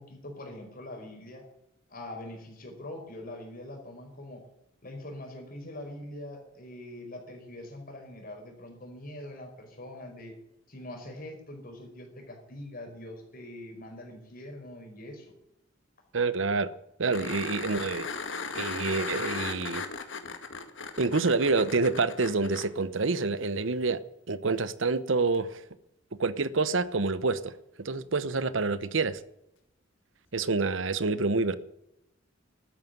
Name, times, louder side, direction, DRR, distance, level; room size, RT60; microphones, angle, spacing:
voice 1, 0.0-1.5 1.9-4.5 4.8-10.4 10.7-15.3, left 1 dB, 50° left, 5.0 m, -43 dB
voice 2, 16.1-16.7 17.0-18.1 18.5-19.8 21.0-24.0 24.3-25.6 26.2-27.5 27.8-29.2 30.3-31.6, right 3 dB, 75° right, 0.9 m, -27 dB
sound 1, 17.1-22.7 25.3-25.4, left 4 dB, 70° left, 1.9 m, -37 dB
13.0 x 9.3 x 9.4 m
head